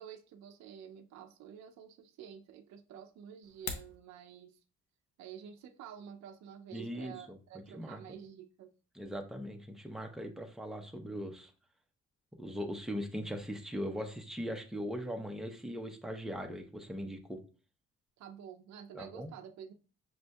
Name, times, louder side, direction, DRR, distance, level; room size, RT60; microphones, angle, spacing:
voice 1, 0.0-4.6 5.2-8.7 18.2-19.7, right 8 dB, 65° right, 0.5 m, -50 dB
sound 1, 3.4-4.0, left 5 dB, 65° left, 0.8 m, -40 dB
voice 2, 6.7-7.4 7.7-8.0 8.9-11.5 12.4-17.4 18.9-19.3, equal, ahead, 0.6 m, -40 dB
6.3 x 2.6 x 2.2 m
cardioid pair, 90°, 30 cm